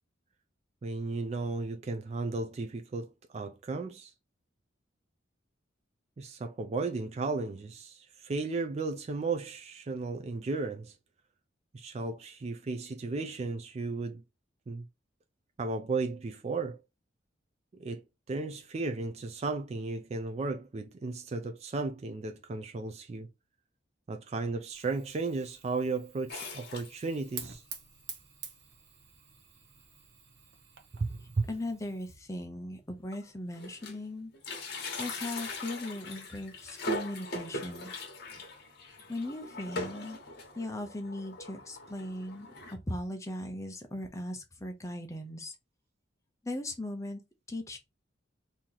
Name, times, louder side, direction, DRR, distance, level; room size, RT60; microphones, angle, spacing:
voice 1, 0.8-4.1 6.2-10.9 11.7-14.2 14.7-14.8 15.6-16.8 17.7-23.3 24.1-27.6 31.0-31.5, right 3 dB, 35° right, 0.3 m, -34 dB
Fire, 24.7-32.2, right 7 dB, 65° right, 0.7 m, -49 dB
sound 1, 26.3-27.5 28.0-28.1 28.3-28.4 29.3-29.4 29.8-30.0 30.3-30.4 31.7-31.8 32.4-32.5 32.9-34.1 34.3-42.7, left 1 dB, 55° left, 1.0 m, -41 dB
voice 2, 31.5-34.3 35.0-37.9 39.1-40.2 40.6-42.5 42.9-45.5 46.4-47.2 47.5-47.8, left 1 dB, 15° left, 0.6 m, -38 dB
2.9 x 2.7 x 3.8 m
head